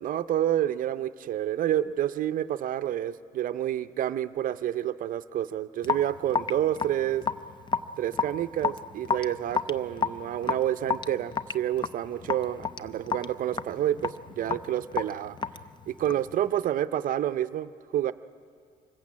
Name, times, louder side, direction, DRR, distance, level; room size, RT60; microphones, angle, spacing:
voice 1, 0.0-7.2 8.0-15.4 15.9-18.1, right 11 dB, 55° right, 13 dB, 0.6 m, -29 dB
Raindrop / Drip, 5.8-16.3, left 6 dB, 30° left, 0.6 m, -32 dB
25.0 x 15.0 x 8.5 m, 2.3 s
cardioid pair, 110°, 17 cm